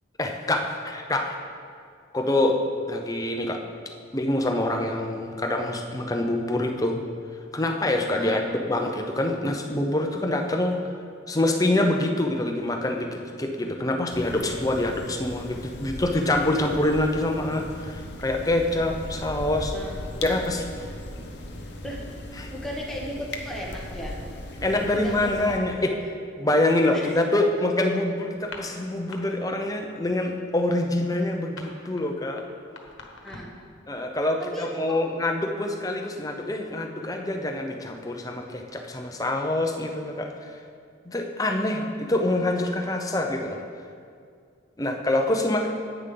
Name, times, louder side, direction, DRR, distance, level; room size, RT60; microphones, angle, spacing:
voice 1, 0.2-1.4 2.1-2.6 2.9-3.6 4.1-7.0 7.5-10.8 11.3-19.7 20.2-20.9 22.4-22.5 24.6-25.9 26.4-32.4 33.9-40.6 41.1-43.6 44.8-45.7, left 1 dB, 20° left, 3 dB, 0.7 m, -25 dB
sound 1, 14.1-25.6, left 1 dB, 55° left, 0.9 m, -38 dB
voice 2, 22.5-24.2 24.9-25.6 25.9-26.0 26.9-27.2 33.2-33.5 34.4-35.1, equal, ahead, -4 dB, 1.2 m, -36 dB
sound 2, 28.4-29.2 29.5-29.8 30.1-33.6, left 4 dB, 75° left, 1.2 m, -44 dB
10.0 x 9.2 x 3.9 m, 2.2 s
head